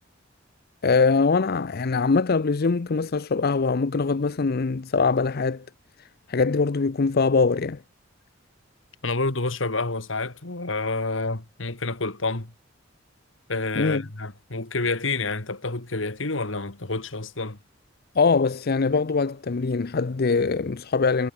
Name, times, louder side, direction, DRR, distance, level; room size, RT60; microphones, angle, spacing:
voice 1, 0.8-5.6 6.3-7.8 13.8-14.0 18.2-21.3, left 4 dB, 55° left, 0.6 m, -22 dB
voice 2, 9.0-12.5 13.5-17.6, left 3 dB, 75° left, 2.3 m, -28 dB
head